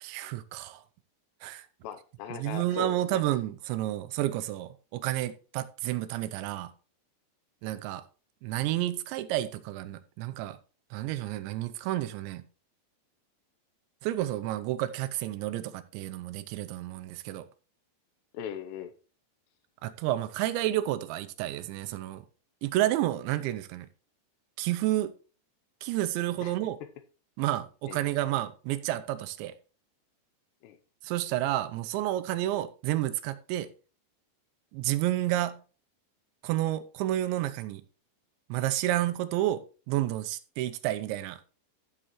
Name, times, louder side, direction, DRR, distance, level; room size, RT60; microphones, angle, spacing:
voice 1, 0.0-0.8 1.4-1.7 2.3-6.7 7.6-8.0 8.4-10.6 10.9-12.4 14.0-17.5 19.8-22.2 22.6-23.9 24.6-25.1 25.8-26.8 27.4-29.5 31.0-33.7 34.7-35.6 36.4-37.8 38.5-41.4, right 14 dB, 85° right, 2.9 m, -30 dB
voice 2, 1.8-3.2 18.3-18.9 26.4-26.6 27.9-28.0 30.6-30.8, left 9 dB, 80° left, 2.7 m, -39 dB
14.0 x 6.7 x 3.0 m
omnidirectional pair, 5.2 m